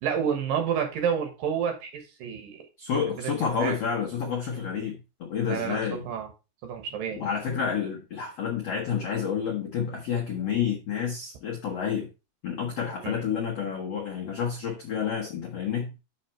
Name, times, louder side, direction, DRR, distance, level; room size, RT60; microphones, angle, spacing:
voice 1, 0.0-2.6 3.2-3.8 5.5-5.8 6.0-6.3 6.6-7.2 13.0-13.2, right 7 dB, 65° right, 5 dB, 2.7 m, -29 dB
voice 2, 2.8-6.1 7.2-12.1 12.4-15.9, left 7 dB, 70° left, -1 dB, 1.5 m, -29 dB
6.5 x 5.8 x 4.4 m, 0.29 s
omnidirectional pair, 4.8 m